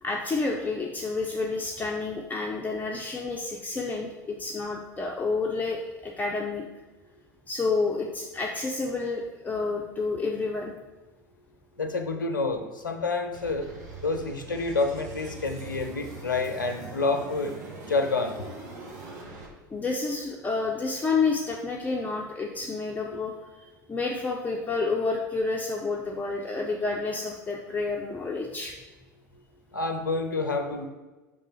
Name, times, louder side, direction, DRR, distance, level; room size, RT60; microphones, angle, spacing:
voice 1, 0.0-6.6 7.5-10.7 19.7-23.3 23.9-28.7, left 3 dB, 15° left, 0 dB, 0.6 m, -29 dB
voice 2, 11.8-13.7 14.0-17.6 17.9-18.5 23.1-23.2 29.7-30.9, left 3 dB, 85° left, 7 dB, 0.7 m, -28 dB
sound 1, 13.3-19.5, right 4 dB, 65° right, 1.3 m, -43 dB
5.4 x 3.7 x 5.6 m, 1.2 s
figure-of-eight pair, 75°, 10 cm